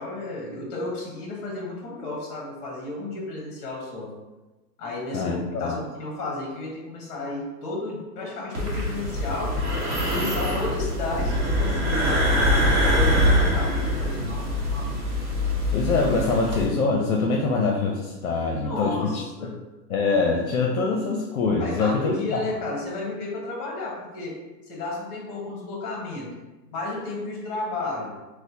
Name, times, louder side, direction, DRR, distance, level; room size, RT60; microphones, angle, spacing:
voice 1, 0.0-4.2 4.8-9.6 10.0-15.0 18.6-19.6 21.6-26.3 26.7-28.2, left 2 dB, 25° left, -2 dB, 0.9 m, -33 dB
voice 2, 5.1-5.8 15.7-19.5 19.9-22.2, left 4 dB, 60° left, 0 dB, 0.6 m, -24 dB
sound 1, 8.5-16.7, equal, 40° right, 1.0 m, -24 dB
4.2 x 2.2 x 2.7 m, 1.1 s
hypercardioid pair, 145°, 49 cm